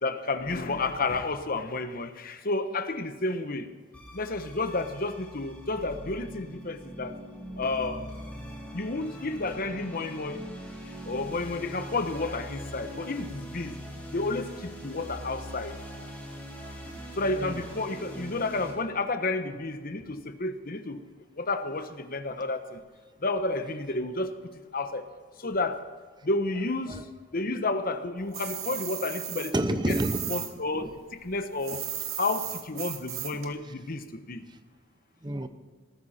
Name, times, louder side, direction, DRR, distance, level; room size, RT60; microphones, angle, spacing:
voice 1, 0.0-3.7 4.1-7.1 7.6-8.1 8.7-10.4 11.1-13.8 14.1-15.8 17.2-21.0 21.3-22.8 23.2-24.3 24.7-25.0 25.4-25.8 26.2-27.0 27.3-29.5 29.9-30.0 30.3-31.8 32.2-34.4, left 2 dB, 45° left, 9 dB, 1.1 m, -31 dB
sound 1, 3.9-18.7, equal, 5° left, 4.1 m, -42 dB
sound 2, 28.3-30.5 30.8-33.5, right 11 dB, 90° right, 2.1 m, -36 dB
voice 2, 29.5-30.3 30.7-30.9 33.3-33.4 35.2-35.5, right 1 dB, 20° right, 9 dB, 0.9 m, -29 dB
20.0 x 14.0 x 4.3 m, 1.5 s
head